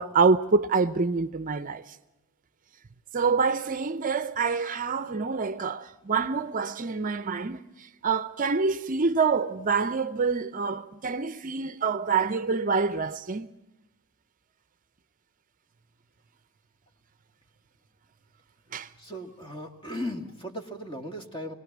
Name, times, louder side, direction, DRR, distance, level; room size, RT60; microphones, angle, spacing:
voice 1, 0.0-2.0 3.1-13.5 18.7-18.9, right 4 dB, 40° right, 0.6 m, -26 dB
voice 2, 19.0-21.5, equal, 25° left, 2.2 m, -37 dB
22.0 x 19.0 x 7.3 m
head